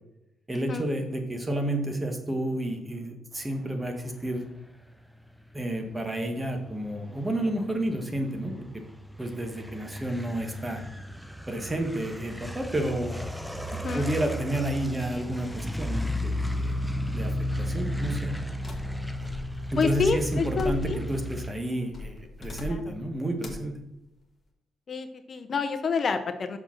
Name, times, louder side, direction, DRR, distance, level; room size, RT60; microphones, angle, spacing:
voice 1, 0.5-4.5 5.5-8.8 9.2-10.8 11.5-13.1 13.9-16.8 17.1-18.4 19.7-23.8, right 1 dB, 15° right, 5 dB, 1.4 m, -31 dB
sound 1, 5.0-21.5, left 1 dB, ahead, 0.6 m, -34 dB
voice 2, 13.7-14.1 19.8-21.0 22.7-22.8 24.9-26.6, left 4 dB, 45° left, 8 dB, 0.6 m, -28 dB
sound 2, 18.6-21.2 21.9-23.0 23.4-23.7, left 2 dB, 30° left, 1.7 m, -39 dB
6.3 x 5.0 x 5.9 m, 0.90 s
cardioid pair, 90°, 0 cm